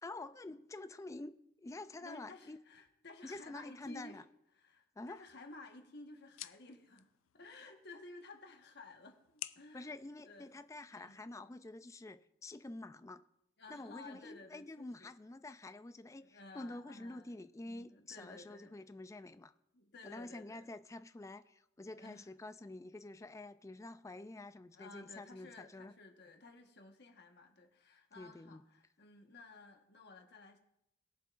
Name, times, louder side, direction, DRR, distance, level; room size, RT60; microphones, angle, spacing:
voice 1, 0.0-2.6 3.2-4.2 5.0-5.2 9.7-13.2 13.7-19.5 20.0-25.9 28.2-28.6, left 2 dB, 15° left, 0.3 m, -48 dB
voice 2, 2.0-4.2 4.5-7.1 7.3-10.6 10.9-11.3 13.6-15.1 16.2-17.4 17.6-18.8 19.7-20.7 21.9-22.3 24.7-30.6, left 3 dB, 55° left, 1.3 m, -55 dB
sound 1, 5.1-11.1, left 14 dB, 85° left, 0.4 m, -54 dB
21.5 x 7.4 x 2.5 m
head